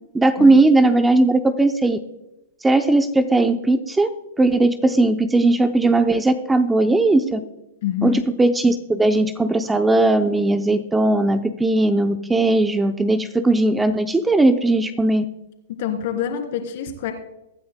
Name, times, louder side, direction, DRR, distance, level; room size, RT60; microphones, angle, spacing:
voice 1, 0.1-2.0 2.6-4.1 4.4-7.4 8.0-15.2, right 2 dB, 10° right, 9 dB, 0.6 m, -18 dB
voice 2, 7.8-8.2 15.8-17.1, left 9 dB, 60° left, 3 dB, 3.0 m, -26 dB
22.5 x 9.4 x 2.2 m, 0.91 s
hypercardioid pair, 140°, 0 cm